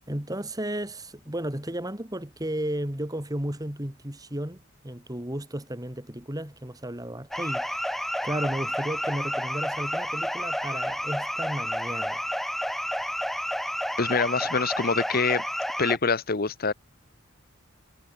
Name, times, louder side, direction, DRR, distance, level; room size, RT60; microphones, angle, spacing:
voice 1, 0.1-7.9 8.2-12.3, right 1 dB, 15° right, 2.5 m, -33 dB
sound 1, 7.3-16.0, equal, ahead, 0.5 m, -30 dB
voice 2, 14.0-15.4 15.8-16.7, left 4 dB, 45° left, 1.2 m, -25 dB
head